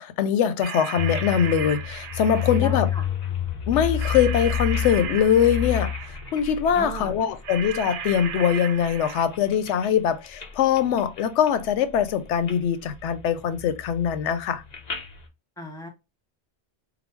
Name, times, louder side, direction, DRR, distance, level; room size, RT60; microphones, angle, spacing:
voice 1, 0.0-2.9 3.7-5.9 6.3-14.6, left 8 dB, 90° left, 0.9 m, -22 dB
sound 1, 0.6-2.9 4.0-6.4 7.4-9.2, right 8 dB, 90° right, 0.9 m, -35 dB
sound 2, 1.0-8.4 8.8-9.9 10.2-10.5 10.8-11.7 12.0-12.5 12.9-15.2, left 9 dB, 45° left, 0.8 m, -30 dB
voice 2, 2.3-3.1 6.7-7.1 15.6-15.9, equal, 5° left, 0.9 m, -36 dB
3.8 x 2.0 x 4.4 m
omnidirectional pair, 1.2 m